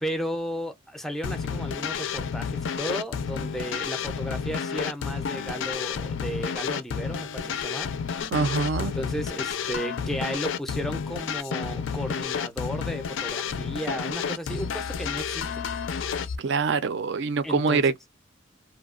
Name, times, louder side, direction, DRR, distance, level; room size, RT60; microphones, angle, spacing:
voice 1, 0.0-7.9 8.8-15.5 17.4-17.8, equal, ahead, 0.4 m, -34 dB
sound 1, 1.2-16.4, left 6 dB, 75° left, 0.4 m, -31 dB
voice 2, 8.3-8.9 16.4-18.1, right 4 dB, 60° right, 0.4 m, -25 dB
2.7 x 2.1 x 2.3 m
head